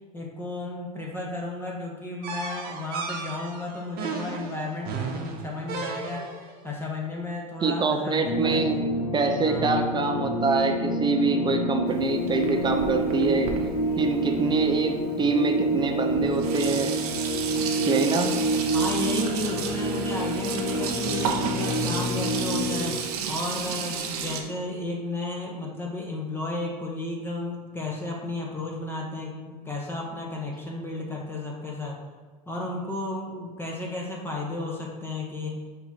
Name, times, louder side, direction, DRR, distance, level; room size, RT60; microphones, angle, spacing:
voice 1, 0.1-8.8 9.4-9.7 18.7-32.0 32.5-35.6, left 2 dB, 10° left, -2 dB, 1.3 m, -33 dB
sound 1, 2.2-6.5, right 4 dB, 50° right, 1.2 m, -34 dB
voice 2, 7.6-8.8 9.1-13.5 14.0-16.9 17.9-18.3, right 4 dB, 25° right, 4 dB, 0.8 m, -25 dB
sound 2, 8.2-23.0, right 1 dB, 65° left, 1.3 m, -28 dB
Sink (filling or washing), 11.9-15.0 15.8-15.9 16.1-24.4, right 7 dB, 70° right, 0.9 m, -33 dB
5.8 x 4.3 x 4.3 m, 1.5 s
hypercardioid pair, 90°, 20 cm